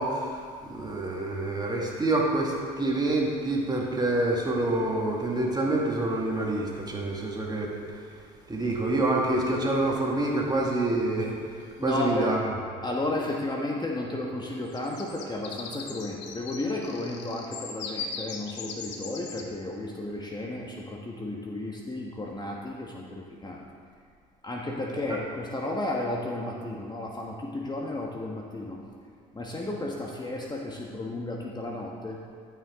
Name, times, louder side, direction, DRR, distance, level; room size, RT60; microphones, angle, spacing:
voice 1, 0.0-7.7 8.5-12.4 25.1-25.2, right 2 dB, 20° right, -2 dB, 2.1 m, -27 dB
sound 1, 5.0-5.1 9.4-9.9 11.6-11.7 12.0-12.3 14.6-19.5, left 5 dB, 60° left, 1.0 m, -40 dB
voice 2, 11.8-12.3 12.8-23.6 24.4-28.8 29.3-32.2, left 2 dB, 20° left, -2 dB, 1.3 m, -33 dB
14.0 x 5.8 x 3.6 m, 2.1 s
hypercardioid pair, 65°, 20 cm